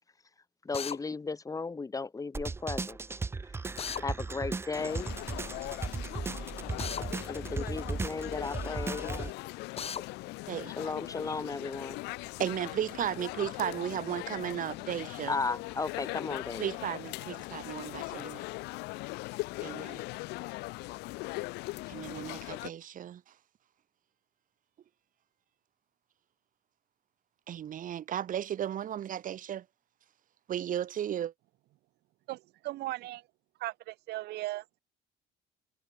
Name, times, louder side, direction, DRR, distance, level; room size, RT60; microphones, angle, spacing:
voice 1, 0.6-3.0 3.5-3.6 4.0-5.1 7.3-9.3 10.8-12.0 15.3-16.7, left 4 dB, 20° left, 1.5 m, -35 dB
Drill, 0.7-1.0 3.8-4.1 6.8-7.1 9.8-10.0, left 7 dB, 35° left, 1.1 m, -36 dB
sound 1, 2.3-9.3, right 4 dB, 15° right, 0.4 m, -37 dB
sound 2, 4.7-22.7, left 23 dB, 85° left, 0.4 m, -40 dB
voice 2, 12.4-15.3 16.6-18.4 19.6-20.1 21.9-23.2 27.5-29.6 30.5-31.3, right 10 dB, 55° right, 1.8 m, -35 dB
voice 3, 32.3-33.2 33.6-34.6, right 17 dB, 75° right, 1.1 m, -37 dB
cardioid pair, 110°, 17 cm